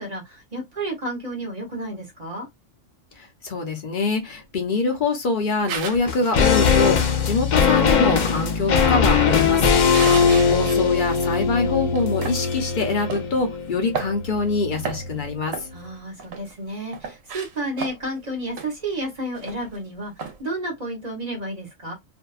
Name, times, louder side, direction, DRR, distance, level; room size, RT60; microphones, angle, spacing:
voice 1, 0.0-2.5 15.7-21.9, right 1 dB, 40° right, 0.7 m, -31 dB
voice 2, 3.4-9.7 10.5-15.5, left 4 dB, 45° left, 0.7 m, -24 dB
sound 1, 5.7-6.1 8.5-10.8 11.2-11.3 12.0-12.4 13.1-13.3 13.7-14.5 14.8-15.2 15.5-16.5 16.9-18.2 18.6-18.7 19.0-19.1 19.3-19.8 20.2-20.4, right 5 dB, 85° right, 1.0 m, -33 dB
sound 2, 6.1-15.4 15.7-15.8, left 6 dB, 80° left, 0.4 m, -20 dB
2.6 x 2.2 x 2.3 m
omnidirectional pair, 1.4 m